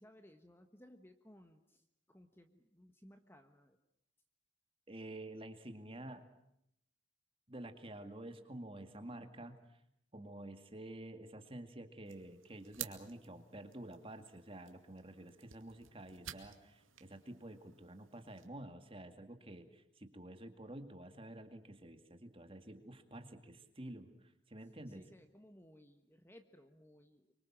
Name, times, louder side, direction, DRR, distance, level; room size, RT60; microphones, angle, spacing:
voice 1, 0.0-3.8 24.9-27.3, equal, 10° left, 7 dB, 1.2 m, -61 dB
voice 2, 4.9-6.3 7.5-9.8 10.1-25.1, right 1 dB, 25° right, 8 dB, 2.1 m, -50 dB
sound 1, 12.0-18.5, right 12 dB, 75° right, 2.4 m, -53 dB
25.5 x 24.5 x 7.5 m, 0.79 s
head